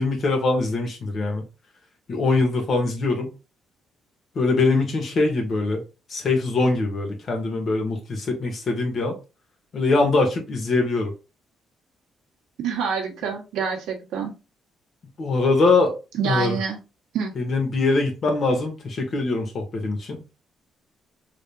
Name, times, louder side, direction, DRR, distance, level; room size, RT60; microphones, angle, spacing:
voice 1, 0.0-1.4 2.1-3.3 4.4-5.8 6.1-9.2 9.7-11.1 15.2-15.9 16.2-16.6 17.4-20.2, left 3 dB, 55° left, 1.6 m, -22 dB
voice 2, 12.6-14.3 16.2-16.8 17.1-17.4, right 6 dB, 85° right, 1.2 m, -26 dB
4.0 x 3.5 x 2.5 m
cardioid pair, 90°, 0 cm